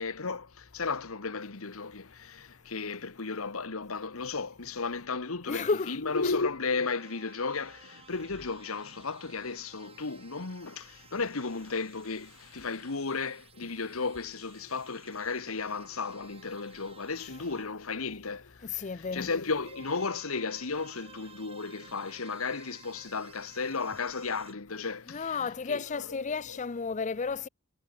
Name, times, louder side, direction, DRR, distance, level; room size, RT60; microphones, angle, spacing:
voice 1, 0.0-26.6, left 4 dB, 75° left, 1.3 m, -34 dB
voice 2, 5.5-6.3 18.6-19.3 25.1-27.5, left 5 dB, 35° left, 0.5 m, -33 dB
sound 1, 6.7-17.7 19.6-24.5, right 5 dB, 25° right, 2.6 m, -55 dB
head